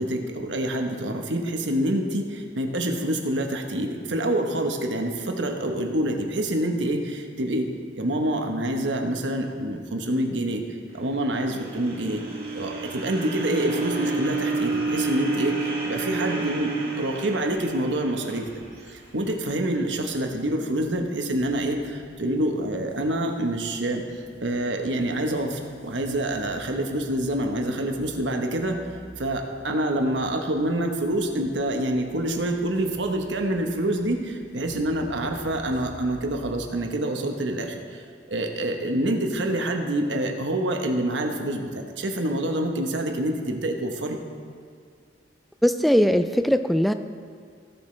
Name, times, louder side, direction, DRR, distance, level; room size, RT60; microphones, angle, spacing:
voice 1, 0.0-7.7 7.9-10.6 10.9-12.2 12.5-28.8 29.2-38.0 38.3-44.2, right 1 dB, 85° right, 3 dB, 1.1 m, -27 dB
sound 1, 10.9-19.2, right 3 dB, 55° right, 1.9 m, -30 dB
sound 2, 17.4-36.5, left 1 dB, 40° left, 3.0 m, -51 dB
voice 2, 45.6-46.9, equal, ahead, 9 dB, 0.3 m, -20 dB
17.0 x 7.2 x 3.3 m, 2.1 s
head